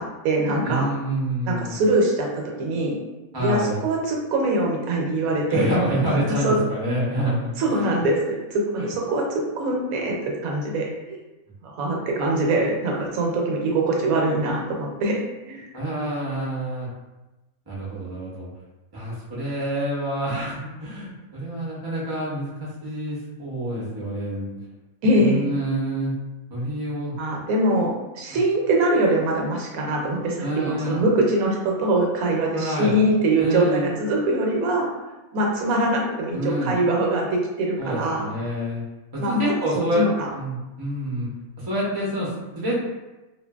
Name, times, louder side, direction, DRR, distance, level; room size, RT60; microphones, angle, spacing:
voice 1, 0.0-0.9 1.5-3.0 3.4-5.7 6.3-6.6 7.6-11.2 11.6-15.2 15.5-15.7 25.0-25.5 27.2-34.9 35.3-37.3 37.6-38.3 39.2-39.5 39.9-40.3, right 1 dB, 75° right, 0 dB, 1.0 m, -23 dB
voice 2, 0.6-1.8 3.3-3.8 5.5-8.1 8.8-8.9 15.7-16.9 17.7-18.5 18.9-24.6 25.2-26.1 26.5-27.2 30.4-31.0 32.5-32.9 33.4-33.9 36.3-36.7 37.8-38.8 39.1-40.0 40.3-41.3 41.6-42.8, right 1 dB, 40° right, -6 dB, 0.3 m, -27 dB
2.7 x 2.5 x 2.3 m, 1.1 s
omnidirectional pair, 1.5 m